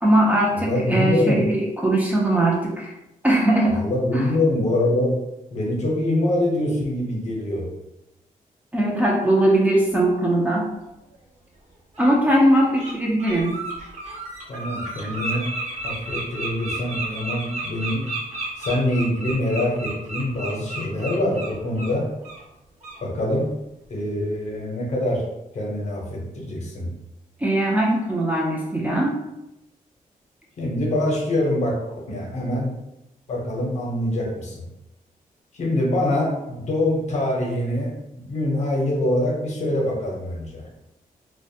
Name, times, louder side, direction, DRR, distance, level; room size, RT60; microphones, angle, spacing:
voice 1, 0.0-2.9 3.2-3.8 4.1-4.3 8.7-10.7 12.0-13.6 27.4-29.2, right 1 dB, 10° right, -3 dB, 0.4 m, -20 dB
voice 2, 0.5-1.4 3.7-5.1 5.5-7.6 14.5-15.5 15.8-18.1 18.6-22.1 23.0-23.5 23.9-25.2 25.5-26.9 30.6-31.8 32.1-32.7 33.3-34.7 35.5-40.6, left 1 dB, 55° left, -1 dB, 0.7 m, -24 dB
Bird, 11.1-11.2 11.9-12.1 12.5-12.9 13.2-21.9 22.2-22.4 22.8-23.0, right 2 dB, 55° right, 0.8 m, -32 dB
2.4 x 2.1 x 2.7 m, 0.91 s
wide cardioid pair, 145°, 14 cm